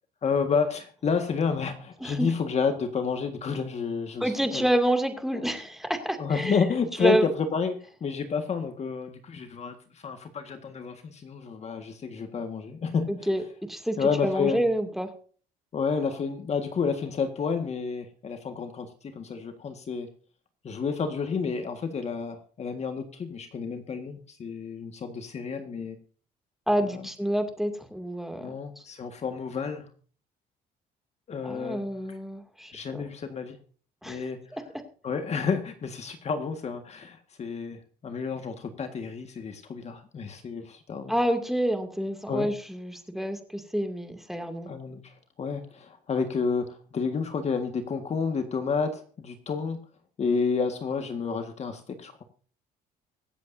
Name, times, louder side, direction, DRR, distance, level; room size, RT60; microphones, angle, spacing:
voice 1, 0.2-4.7 5.3-5.4 6.2-13.3 14.0-14.6 15.7-20.1 20.6-26.0 26.9-27.0 28.4-29.9 31.3-31.8 32.7-33.6 34.0-34.6 35.0-41.1 42.3-42.5 44.7-49.8 50.2-52.2, left 5 dB, 40° left, 6 dB, 1.7 m, -30 dB
voice 2, 4.2-6.6 7.0-7.3 13.1-13.4 13.7-15.1 26.7-28.8 31.4-33.0 34.0-34.2 41.1-44.7, right 1 dB, ahead, 6 dB, 2.4 m, -28 dB
24.5 x 8.3 x 2.7 m, 0.41 s
cardioid pair, 110°, 17 cm